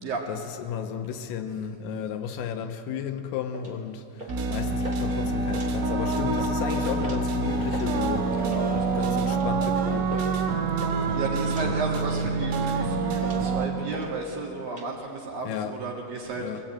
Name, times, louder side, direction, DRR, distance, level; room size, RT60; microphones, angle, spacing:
voice 1, 0.3-8.4 9.0-10.3 11.1-11.2 11.6-11.8 15.5-15.8 16.4-16.6, left 8 dB, 85° left, 6 dB, 3.6 m, -34 dB
sound 1, 3.5-3.7 4.2-4.5 4.8-5.0 5.4-6.0 6.3-6.5 7.0-7.3 7.6-7.9 8.4-8.7 9.3-9.5 10.1-10.3 10.5-11.0 11.5-11.7 12.1-12.7 13.2-13.5 13.9-14.1 14.4-14.9, equal, 30° right, 1.0 m, -41 dB
sound 2, 4.3-13.7, right 3 dB, 80° right, 4.2 m, -26 dB
sound 3, 4.7-10.4, left 1 dB, 20° left, 1.0 m, -39 dB
voice 2, 8.4-9.0 11.1-16.5, right 4 dB, 55° right, -1 dB, 2.8 m, -33 dB
23.0 x 16.5 x 8.9 m, 2.7 s
omnidirectional pair, 5.9 m